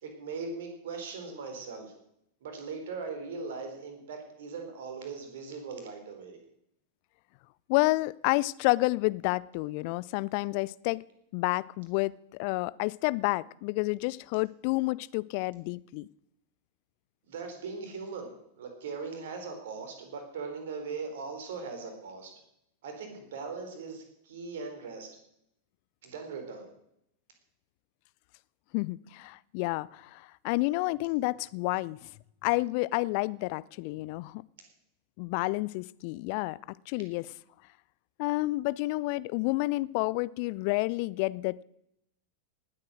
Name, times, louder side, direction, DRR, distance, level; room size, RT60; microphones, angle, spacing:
voice 1, 0.0-1.9 2.4-6.4 17.3-22.3 22.8-25.1 26.0-26.7, right 4 dB, 55° right, 5 dB, 3.8 m, -39 dB
voice 2, 7.7-11.0 11.3-12.1 12.4-16.1 28.7-32.1 32.4-34.4 35.2-37.3 38.2-41.6, left 22 dB, 45° left, 21 dB, 0.5 m, -30 dB
18.5 x 8.6 x 6.3 m, 0.78 s
figure-of-eight pair, 90°, 0 cm